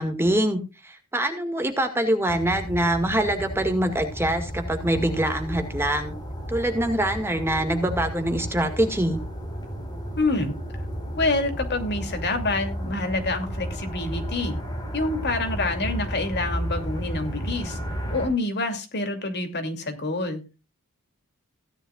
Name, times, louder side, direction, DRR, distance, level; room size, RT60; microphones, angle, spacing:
voice 1, 0.0-6.1 6.5-9.2, right 1 dB, 10° right, 6 dB, 2.0 m, -24 dB
sound 1, 2.3-18.3, equal, 20° left, 4.8 m, -33 dB
voice 2, 10.2-10.6 11.1-14.6 14.9-17.8 18.1-20.4, left 2 dB, 50° left, 5 dB, 2.8 m, -27 dB
16.5 x 10.5 x 2.4 m, 0.29 s
head